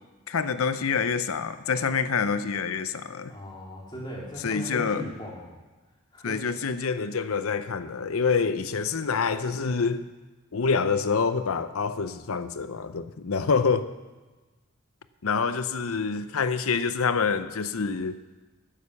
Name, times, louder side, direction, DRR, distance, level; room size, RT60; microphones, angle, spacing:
voice 1, 0.3-3.3 4.4-5.0 6.2-10.1 10.5-13.9 15.2-18.2, left 5 dB, 90° left, 12 dB, 0.7 m, -26 dB
voice 2, 3.3-5.5 6.1-6.4, left 1 dB, 20° left, -3 dB, 2.7 m, -38 dB
10.0 x 9.7 x 7.0 m, 1.2 s
head